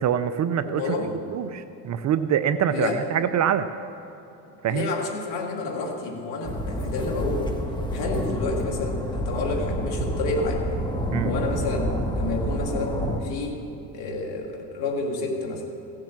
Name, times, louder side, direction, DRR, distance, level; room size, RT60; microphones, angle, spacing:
voice 1, 0.0-1.0 1.3-3.7 4.6-4.9 11.1-11.3, right 9 dB, 35° right, 12 dB, 0.6 m, -24 dB
voice 2, 0.6-1.2 2.7-3.0 4.7-7.5 7.9-10.6 11.2-13.6 13.9-15.6, left 3 dB, 65° left, 2 dB, 2.4 m, -29 dB
sound 1, 6.5-13.2, equal, 10° left, 1.4 m, -28 dB
16.0 x 7.5 x 7.4 m, 2.9 s
hypercardioid pair, 80°, 49 cm